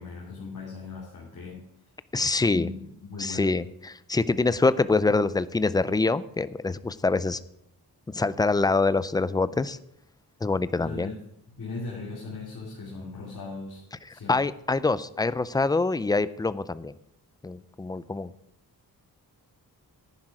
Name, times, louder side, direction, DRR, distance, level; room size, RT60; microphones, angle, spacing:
voice 1, 0.0-1.6 2.3-3.5 10.8-11.1 11.5-13.8 14.1-14.3, left 3 dB, 55° left, -4 dB, 2.9 m, -38 dB
voice 2, 2.1-2.7 3.2-7.4 8.1-9.8 10.4-11.1 14.1-16.9 17.4-18.3, left 3 dB, 10° left, 15 dB, 0.3 m, -25 dB
10.5 x 10.0 x 4.8 m, 0.78 s
wide cardioid pair, 155°, 38 cm